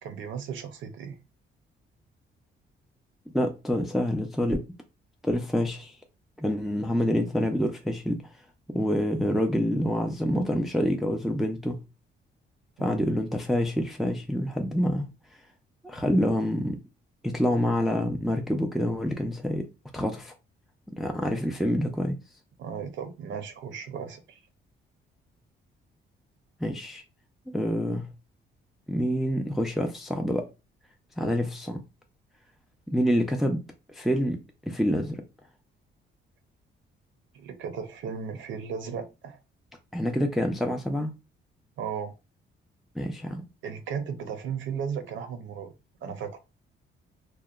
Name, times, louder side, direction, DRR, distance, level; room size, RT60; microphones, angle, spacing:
voice 1, 0.0-1.2 12.8-13.1 22.6-24.4 37.3-39.4 41.8-42.1 43.6-45.7 46.0-46.4, right 6 dB, 75° right, 0.6 m, -35 dB
voice 2, 3.3-4.6 5.2-6.0 6.4-8.2 8.7-11.8 12.8-15.1 15.8-16.8 17.2-19.7 19.9-20.3 20.9-22.2 26.6-27.0 27.5-28.1 28.9-30.4 31.2-31.8 32.9-33.6 33.9-34.4 34.7-35.2 39.9-41.1 43.0-43.4, equal, ahead, 0.4 m, -27 dB
2.8 x 2.1 x 2.3 m
cardioid pair, 90°, 20 cm